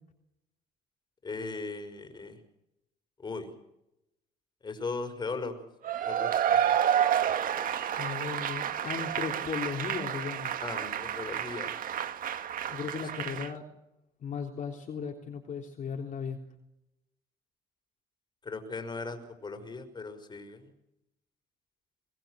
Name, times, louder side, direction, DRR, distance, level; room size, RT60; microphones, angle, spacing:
voice 1, 1.2-2.4 3.2-3.5 4.6-5.6 6.1-6.6 10.6-11.7 13.1-13.3 18.4-20.7, left 3 dB, 25° left, 7 dB, 5.5 m, -38 dB
Cheering / Applause / Crowd, 5.8-13.5, right 9 dB, 55° right, 1.9 m, -30 dB
voice 2, 8.0-10.5 12.7-13.6 14.2-16.4, left 6 dB, 50° left, 2 dB, 3.6 m, -36 dB
23.0 x 21.5 x 6.4 m, 0.83 s
cardioid pair, 110°, 17 cm